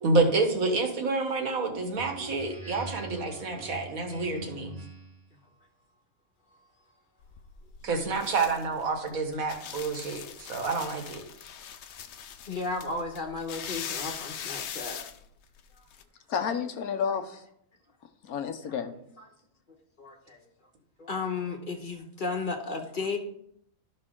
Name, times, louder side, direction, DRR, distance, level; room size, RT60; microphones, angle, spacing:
voice 1, 0.0-4.8 7.8-11.2, right 3 dB, 70° right, 4 dB, 1.8 m, -28 dB
Speech synthesizer, 1.9-5.3, right 2 dB, 25° right, 1.6 m, -43 dB
sound 1, 7.2-16.0, left 8 dB, 60° left, 0.8 m, -41 dB
voice 2, 12.5-15.0 20.0-20.4 21.0-23.2, left 3 dB, 35° left, 3 dB, 1.2 m, -34 dB
voice 3, 16.3-17.4 18.2-19.0, left 7 dB, 80° left, 8 dB, 1.3 m, -31 dB
13.0 x 5.4 x 3.7 m, 0.70 s
omnidirectional pair, 1.5 m